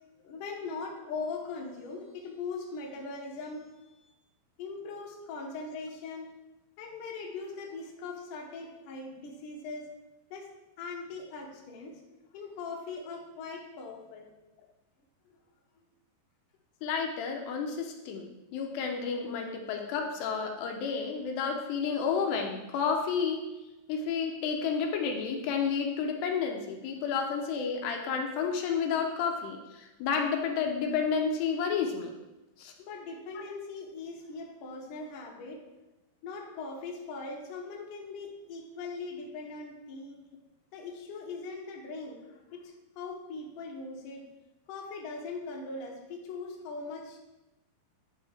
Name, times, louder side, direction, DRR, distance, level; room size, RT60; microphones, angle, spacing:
voice 1, 0.2-3.7 4.0-4.1 4.6-6.3 6.8-9.9 10.3-10.5 10.8-14.3 32.8-35.6 36.2-40.2 40.7-44.3 44.7-47.2, left 4 dB, 65° left, -1 dB, 2.3 m, -40 dB
voice 2, 16.8-23.4 23.9-32.1 32.6-32.7, left 6 dB, 85° left, 3 dB, 2.9 m, -31 dB
10.0 x 5.3 x 3.4 m, 1.0 s
omnidirectional pair, 4.8 m